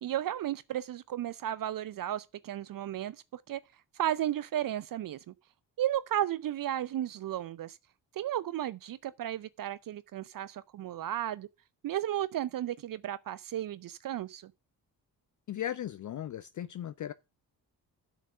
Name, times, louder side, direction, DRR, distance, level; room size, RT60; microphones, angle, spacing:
voice 1, 0.0-3.6 3.9-5.3 5.8-7.8 8.1-11.5 11.8-14.5, right 12 dB, 45° right, 0.5 m, -34 dB
voice 2, 15.5-17.1, left 11 dB, 40° left, 0.5 m, -37 dB
7.4 x 6.4 x 6.5 m
hypercardioid pair, 40°, 49 cm